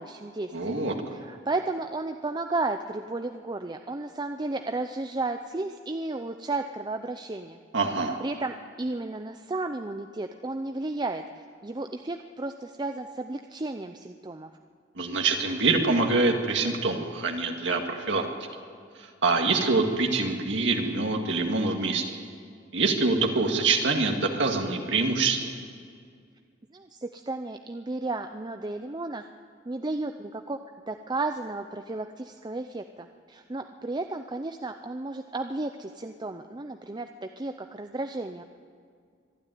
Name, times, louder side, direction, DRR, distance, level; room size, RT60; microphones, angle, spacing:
voice 1, 0.0-0.8 1.1-7.6 7.9-11.2 11.6-14.5 26.7-29.3 29.7-30.6 30.9-38.4, right 2 dB, 25° right, 6 dB, 0.6 m, -33 dB
voice 2, 0.5-0.9 7.7-8.2 15.0-18.2 19.2-22.0 22.7-25.4, right 3 dB, 70° right, 3 dB, 2.0 m, -25 dB
24.0 x 12.0 x 9.4 m, 2.1 s
head